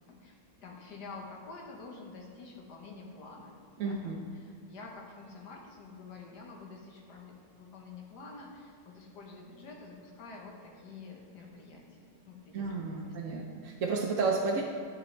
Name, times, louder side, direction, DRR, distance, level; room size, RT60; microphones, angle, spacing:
voice 1, 0.1-3.6 3.8-12.7 13.0-13.4, left 3 dB, 85° left, 0 dB, 1.8 m, -48 dB
voice 2, 3.8-4.2 12.5-14.6, right 4 dB, 60° right, -2 dB, 1.0 m, -31 dB
10.5 x 6.5 x 3.3 m, 2.4 s
omnidirectional pair, 1.7 m